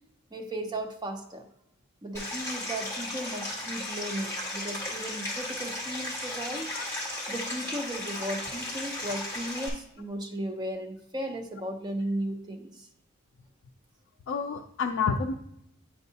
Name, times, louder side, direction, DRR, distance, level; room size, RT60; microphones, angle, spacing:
voice 1, 0.3-1.5 2.0-6.7 7.3-12.9, right 1 dB, 20° right, 4 dB, 0.5 m, -35 dB
Stream, 2.1-9.7, left 1 dB, 10° left, 1.5 m, -35 dB
voice 2, 14.3-15.3, left 5 dB, 55° left, 5 dB, 0.3 m, -29 dB
9.0 x 4.5 x 2.7 m, 0.77 s
head